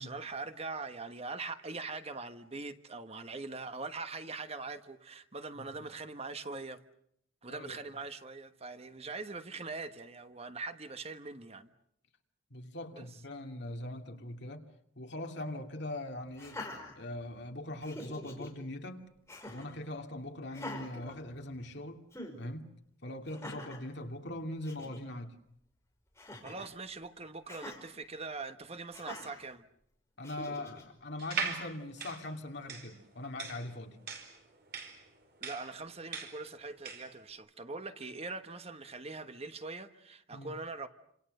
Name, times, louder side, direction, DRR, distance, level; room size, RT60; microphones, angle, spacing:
voice 1, 0.0-6.8 7.4-11.7 12.9-13.1 26.4-29.7 35.4-40.9, right 3 dB, 30° right, 1.3 m, -42 dB
voice 2, 7.5-7.9 12.5-14.6 15.0-16.6 17.0-19.0 19.5-22.1 22.4-22.7 23.0-25.4 30.2-34.0 40.3-40.6, left 1 dB, 55° left, 2.7 m, -41 dB
Laughter, 16.3-17.4 17.8-18.5 19.3-19.8 20.5-21.7 22.1-22.4 23.3-23.9 24.4-24.5 24.6-25.0 26.2-26.7 27.5-27.8 28.9-29.4 30.2-30.8, left 1 dB, 15° left, 5.2 m, -45 dB
sound 1, 31.2-37.2, right 5 dB, 50° right, 4.7 m, -40 dB
29.0 x 27.0 x 6.7 m
head